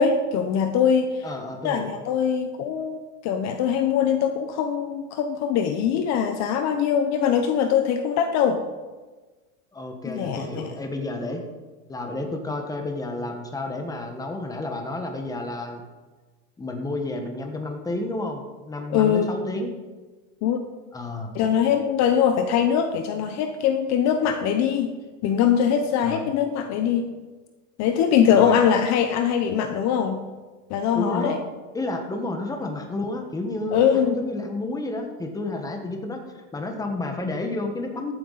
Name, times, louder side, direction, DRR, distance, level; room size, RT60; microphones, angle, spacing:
voice 1, 0.0-1.2 1.6-8.6 10.0-10.7 18.9-19.3 20.4-20.6 21.3-24.9 25.2-27.0 27.8-30.2 30.7-31.4 33.7-34.2, left 8 dB, 40° left, 7 dB, 0.9 m, -22 dB
voice 2, 1.2-2.0 9.7-11.4 11.9-15.8 16.6-19.7 20.9-21.3 26.0-26.3 28.3-28.6 30.9-31.4 31.7-38.1, left 2 dB, 10° left, 4 dB, 1.4 m, -31 dB
14.0 x 9.1 x 4.1 m, 1.3 s
supercardioid pair, 145°, 41 cm